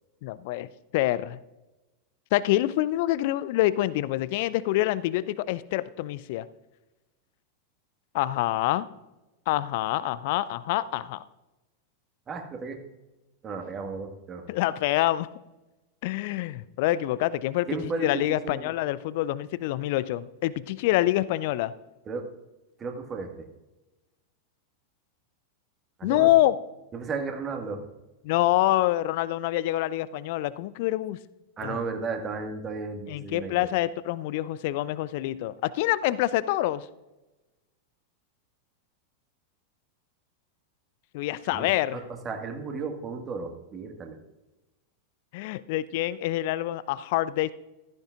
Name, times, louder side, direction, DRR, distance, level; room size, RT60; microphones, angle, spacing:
voice 1, 0.2-0.7 0.9-1.4 2.3-6.5 8.1-8.9 9.5-11.2 14.5-15.3 16.0-17.7 18.0-21.7 26.0-26.6 28.2-31.2 31.6-31.8 33.1-36.9 41.1-42.0 45.3-47.5, left 15 dB, 50° left, 18 dB, 0.4 m, -26 dB
voice 2, 12.3-12.8 13.4-14.5 17.7-18.7 22.1-22.3 22.8-23.5 26.0-26.3 26.9-27.9 31.6-33.7 41.4-44.2, right 4 dB, 25° right, 4 dB, 1.8 m, -34 dB
15.0 x 14.5 x 2.5 m, 1.0 s
figure-of-eight pair, 90°, 0 cm